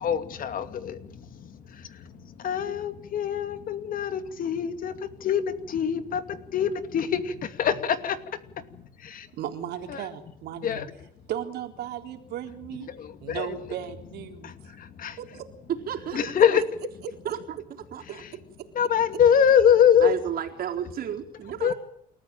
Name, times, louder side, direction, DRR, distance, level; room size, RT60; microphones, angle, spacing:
voice 1, 0.0-0.9 2.4-4.9 5.2-5.4 5.7-6.2 6.5-7.2 7.6-8.2 9.9-10.0 10.6-10.8 13.3-13.6 15.0-15.1 16.1-16.6 18.8-20.1 21.6-21.7, left 8 dB, 55° left, 10 dB, 2.5 m, -23 dB
voice 2, 9.3-10.7 11.3-12.9 13.2-14.8 15.2-15.5, right 10 dB, 75° right, 6 dB, 3.7 m, -36 dB
voice 3, 15.7-16.2 17.2-17.6 17.9-18.2 20.0-21.7, right 9 dB, 60° right, 3 dB, 4.2 m, -32 dB
29.0 x 14.0 x 9.2 m, 0.70 s
cardioid pair, 110°, 17 cm